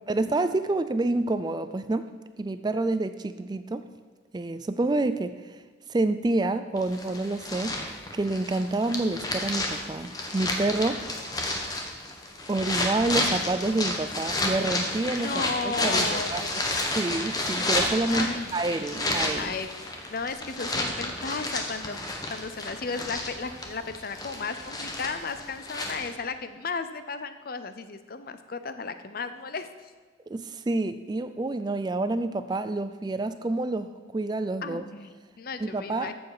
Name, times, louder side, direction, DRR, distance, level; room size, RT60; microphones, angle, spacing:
voice 1, 0.1-2.1 2.4-3.8 4.3-5.6 5.9-11.2 12.5-15.3 15.6-16.6 17.0-19.5 30.3-34.8 35.6-36.1, right 2 dB, 20° right, 11 dB, 0.3 m, -28 dB
sound 1, 6.8-26.1, left 2 dB, 20° left, 1.1 m, -31 dB
voice 2, 15.1-16.7 18.1-18.5 19.4-19.7 20.1-22.0 22.3-29.7 34.6-36.1, left 4 dB, 50° left, 10 dB, 0.6 m, -34 dB
14.0 x 7.1 x 4.8 m, 1.4 s
head